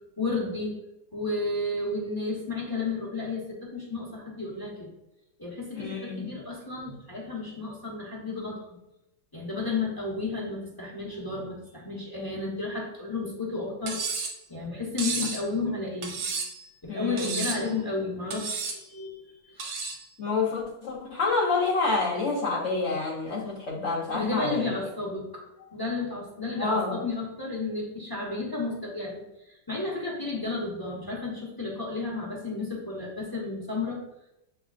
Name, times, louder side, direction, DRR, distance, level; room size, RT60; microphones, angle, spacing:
voice 1, 0.2-0.7 1.1-4.9 5.4-8.8 9.3-14.0 14.5-16.2 16.8-19.7 24.1-34.0, left 3 dB, 20° left, -4 dB, 0.5 m, -32 dB
voice 2, 5.7-6.3 16.9-17.4 20.2-24.8 26.6-27.0, left 3 dB, 65° left, -3 dB, 0.7 m, -28 dB
Cutlery silverware, 13.9-14.4 15.0-15.4 16.0-16.6 17.2-17.7 18.3-18.8 19.6-20.0, right 5 dB, 75° right, 1.4 m, -32 dB
7.1 x 3.1 x 2.4 m, 0.88 s
omnidirectional pair, 2.1 m